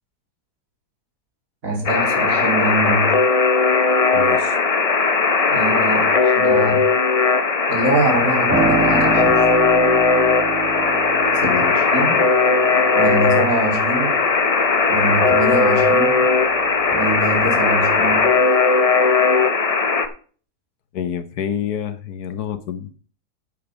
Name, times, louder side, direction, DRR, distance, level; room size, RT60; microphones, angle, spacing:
voice 1, 1.6-3.2 5.5-6.8 7.7-9.4 11.3-12.2 12.9-14.1 14.9-16.2 16.9-18.3, right 2 dB, 55° right, 2 dB, 3.0 m, -24 dB
Alarm, 1.8-20.1, left 4 dB, 35° left, 0.5 m, -17 dB
voice 2, 4.1-4.6 11.4-11.7 20.9-22.9, left 8 dB, 75° left, 12 dB, 1.4 m, -27 dB
Piano, 8.5-16.9 17.3-18.4, right 4 dB, 35° right, 4.9 m, -28 dB
8.7 x 7.7 x 4.9 m, 0.41 s
omnidirectional pair, 1.7 m